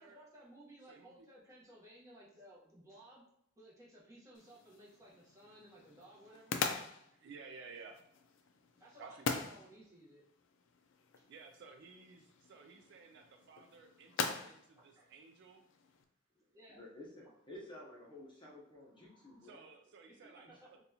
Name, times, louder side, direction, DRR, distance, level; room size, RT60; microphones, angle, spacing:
voice 1, 0.0-3.2 3.6-6.6 8.8-10.2 14.7-15.1 16.3-16.8 17.2-17.3 18.9-19.5 20.3-20.4, right 1 dB, 15° right, -6 dB, 1.0 m, -58 dB
voice 2, 0.9-1.3 6.3-6.4 7.1-8.1 9.0-9.4 11.3-15.6 19.4-20.8, right 4 dB, 60° right, 5 dB, 0.4 m, -55 dB
sound 1, 4.3-16.0, left 5 dB, 65° left, 0.4 m, -43 dB
voice 3, 16.7-19.6, left 1 dB, 25° left, -3 dB, 0.8 m, -52 dB
4.1 x 2.3 x 2.7 m, 0.73 s
head